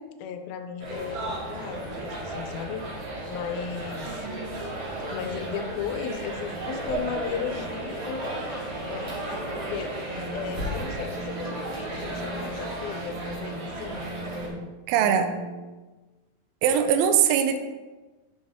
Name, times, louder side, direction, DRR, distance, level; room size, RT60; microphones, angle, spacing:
voice 1, 0.2-2.9 3.3-4.3 5.1-9.2 9.6-10.0 10.3-14.1 14.4-14.7, left 8 dB, 80° left, 8 dB, 2.4 m, -36 dB
sound 1, 0.8-14.5, right 1 dB, 45° right, 2.6 m, -34 dB
voice 2, 4.2-4.5 14.9-15.3 16.6-17.6, right 8 dB, 85° right, 7 dB, 2.5 m, -22 dB
sound 2, 10.1-15.7, right 2 dB, 70° right, 2.1 m, -40 dB
9.3 x 7.1 x 3.5 m, 1.2 s
omnidirectional pair, 4.3 m